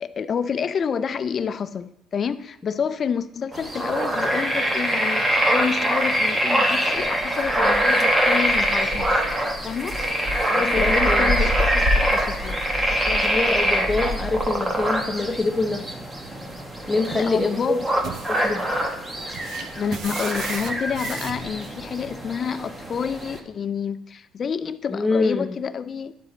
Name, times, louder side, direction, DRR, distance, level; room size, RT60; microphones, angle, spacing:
voice 1, 0.0-9.3 9.6-10.0 10.5-12.6 12.9-13.2 17.1-17.9 19.8-26.1, left 6 dB, 40° left, 12 dB, 0.4 m, -28 dB
sound 1, 3.5-23.4, equal, 15° right, 1.1 m, -24 dB
voice 2, 10.5-11.3 13.2-16.0 16.9-17.8 18.3-18.6 24.9-25.5, left 3 dB, 10° left, 3 dB, 0.9 m, -25 dB
sound 2, 16.9-22.0, right 6 dB, 60° right, 0.7 m, -38 dB
11.5 x 4.2 x 3.9 m, 0.81 s
cardioid pair, 115°, 0 cm